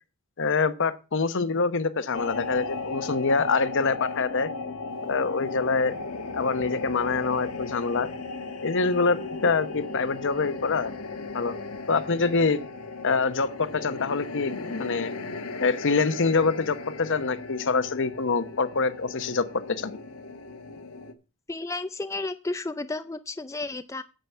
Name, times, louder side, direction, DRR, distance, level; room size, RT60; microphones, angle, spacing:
voice 1, 0.4-4.5 5.0-6.0 6.3-8.1 8.6-10.9 11.3-11.5 11.9-12.6 13.0-15.1 15.6-19.9, left 4 dB, 60° left, 13 dB, 0.9 m, -25 dB
sound 1, 2.1-21.1, left 3 dB, 80° left, 1.3 m, -36 dB
voice 2, 21.5-24.0, left 2 dB, 15° left, 10 dB, 0.4 m, -32 dB
9.2 x 7.7 x 5.6 m, 0.32 s
head